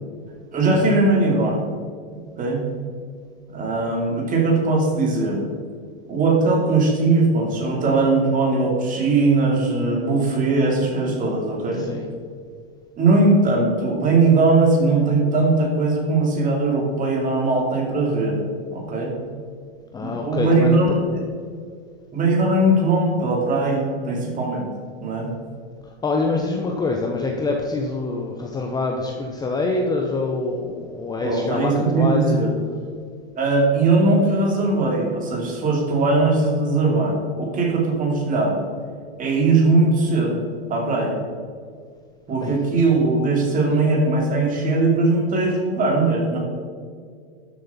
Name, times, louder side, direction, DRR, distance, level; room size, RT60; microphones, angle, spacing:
voice 1, 0.5-1.7 2.4-2.6 3.5-5.4 6.1-11.8 13.0-18.4 18.7-19.1 20.0-21.0 22.1-24.7 25.0-25.3 31.2-32.5 33.4-38.6 39.2-40.4 40.7-41.2 42.3-46.4, right 3 dB, 25° right, 0 dB, 2.8 m, -20 dB
voice 2, 11.8-12.1 19.9-20.8 26.0-32.4 42.4-42.5, left 3 dB, 10° left, 1 dB, 0.9 m, -25 dB
12.5 x 7.7 x 4.3 m, 2.1 s
hypercardioid pair, 130°, 32 cm